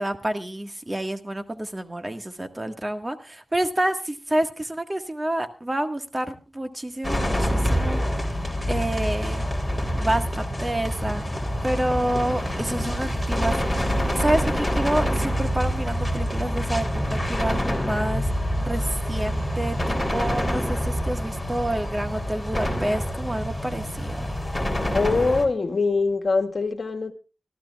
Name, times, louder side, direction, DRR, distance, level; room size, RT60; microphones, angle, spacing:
voice 1, 0.0-8.0 8.7-9.4 10.0-11.3 11.6-18.3 18.6-24.3, right 1 dB, 25° right, 7 dB, 1.6 m, -28 dB
sound 1, 7.0-25.5, equal, 10° left, 3.3 m, -26 dB
voice 2, 24.9-27.1, left 3 dB, 65° left, 5 dB, 1.5 m, -23 dB
25.5 x 13.5 x 2.4 m, 0.31 s
cardioid pair, 55°, 0 cm